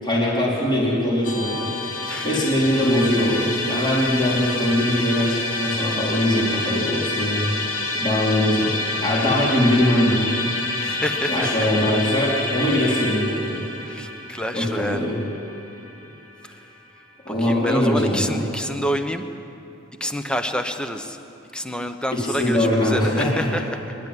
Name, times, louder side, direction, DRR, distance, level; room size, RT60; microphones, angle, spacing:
voice 1, 0.0-7.7 7.9-8.7 9.0-10.3 11.3-13.6 14.5-15.2 17.3-18.4 22.1-23.5, left 1 dB, 20° left, -5 dB, 4.1 m, -22 dB
Musical instrument, 1.2-16.4, left 2 dB, 65° left, 3.2 m, -28 dB
voice 2, 2.0-2.5 10.8-11.7 13.8-15.0 16.4-16.6 17.4-19.3 20.0-21.2 21.5-24.0, equal, 5° left, 7 dB, 0.9 m, -28 dB
28.0 x 12.0 x 9.8 m, 2.8 s
head